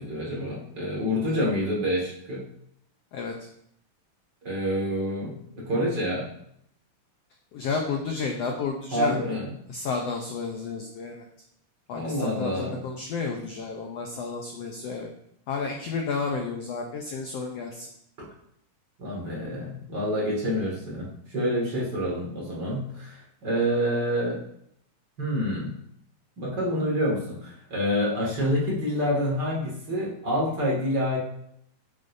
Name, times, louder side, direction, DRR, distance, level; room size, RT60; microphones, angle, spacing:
voice 1, 0.0-2.4 4.4-6.3 8.9-9.5 11.9-12.8 19.0-24.4 25.2-25.7 26.4-31.2, equal, 35° right, -4 dB, 2.2 m, -27 dB
voice 2, 7.5-9.1 9.7-11.2 11.9-15.1 15.5-17.9, left 4 dB, 80° left, 2 dB, 1.4 m, -31 dB
9.3 x 8.8 x 2.7 m, 0.72 s
omnidirectional pair, 3.9 m